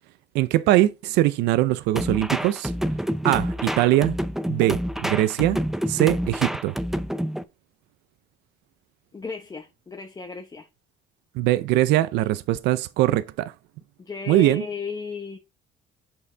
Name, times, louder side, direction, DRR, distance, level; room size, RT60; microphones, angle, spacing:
voice 1, 0.3-2.7 3.2-4.2 4.5-5.6 5.9-6.8 11.4-13.5 14.3-14.6, right 15 dB, 90° right, 0.5 m, -21 dB
sound 1, 2.0-7.4, equal, ahead, 0.5 m, -28 dB
voice 2, 9.1-10.7 14.0-15.4, left 5 dB, 20° left, 0.9 m, -34 dB
6.9 x 5.6 x 3.9 m
cardioid pair, 110°, 17 cm